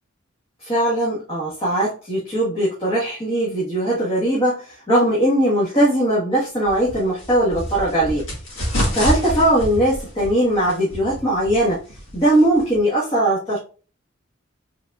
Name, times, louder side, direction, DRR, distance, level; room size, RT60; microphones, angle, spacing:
voice 1, 0.6-8.2 8.6-11.8 12.1-13.6, right 1 dB, 25° left, -7 dB, 1.5 m, -20 dB
sound 1, 6.6-12.8, equal, 70° left, 2.0 m, -28 dB
5.1 x 3.9 x 2.4 m, 0.37 s
head